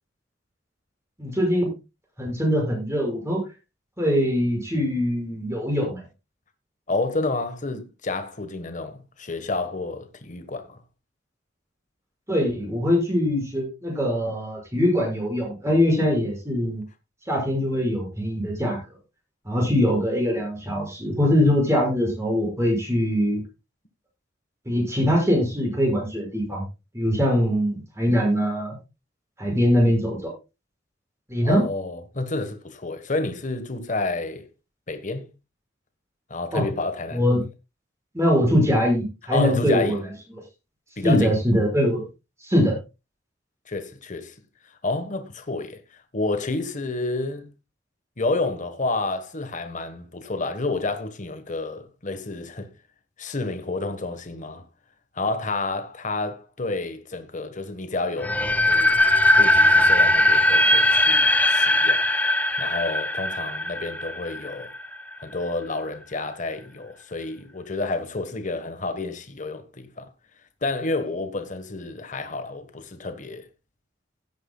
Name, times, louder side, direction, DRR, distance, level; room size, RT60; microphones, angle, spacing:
voice 1, 1.2-1.7 2.2-3.4 4.0-6.0 12.3-16.8 17.3-18.8 19.5-23.4 24.7-26.6 26.9-28.7 29.4-30.3 31.3-31.6 36.5-36.6 37.1-37.4 38.1-40.0 41.0-42.1 42.5-42.8, equal, 15° right, 5.9 m, -22 dB
voice 2, 6.9-10.8 31.4-34.5 34.9-35.3 36.3-37.3 39.3-40.0 41.0-41.4 43.7-44.3 44.8-47.5 48.2-52.7 53.2-54.6 55.1-58.4 58.7-59.1 59.3-62.0 62.6-64.7 65.2-70.1 70.6-73.5, left 3 dB, 45° left, 1.3 m, -29 dB
sound 1, 58.2-65.1, left 1 dB, 10° left, 0.8 m, -19 dB
16.5 x 9.2 x 2.3 m
head